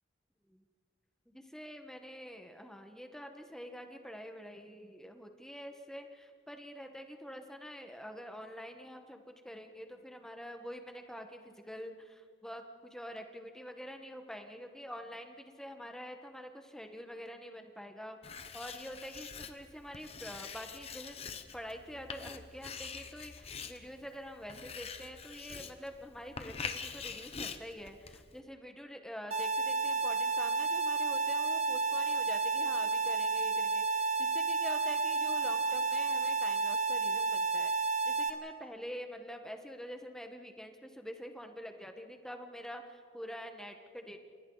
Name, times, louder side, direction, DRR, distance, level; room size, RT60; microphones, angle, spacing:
voice 1, 1.3-18.2 18.5-21.2 21.5-44.2, equal, 5° left, 5 dB, 1.4 m, -46 dB
Writing, 18.2-28.4, left 5 dB, 30° left, 1.1 m, -45 dB
sound 1, 29.3-38.3, right 4 dB, 35° right, 1.3 m, -31 dB
29.5 x 27.5 x 4.0 m, 2.1 s
head